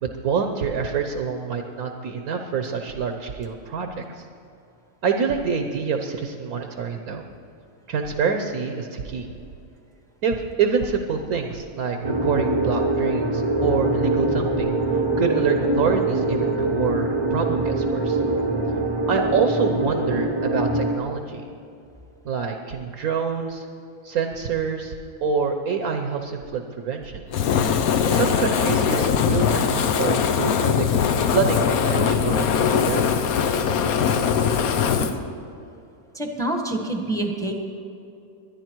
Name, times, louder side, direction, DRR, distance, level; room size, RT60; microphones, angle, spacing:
voice 1, 0.0-4.2 5.0-7.2 7.9-9.3 10.2-14.7 15.2-18.2 19.1-21.5 22.2-23.7 24.0-24.9 25.2-27.2 28.1-30.8 31.3-33.1, right 6 dB, 65° right, 5 dB, 1.4 m, -26 dB
sound 1, 12.0-21.0, right 2 dB, 20° right, 0.8 m, -23 dB
Fire, 27.3-35.1, left 7 dB, 70° left, 1.2 m, -21 dB
voice 2, 36.1-37.5, right 1 dB, ahead, 3 dB, 1.2 m, -27 dB
21.0 x 11.0 x 4.6 m, 2.6 s
omnidirectional pair, 1.7 m